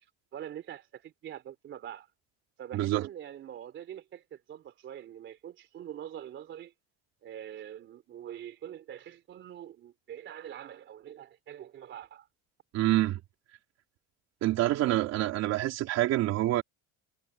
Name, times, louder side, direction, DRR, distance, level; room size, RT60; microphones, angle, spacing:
voice 1, 0.3-2.1 2.6-6.7 7.2-12.3, right 10 dB, 40° right, 3.5 m, -44 dB
voice 2, 2.7-3.1 12.7-13.2 14.4-16.6, right 15 dB, 55° right, 3.5 m, -27 dB
cardioid pair, 175°, 31 cm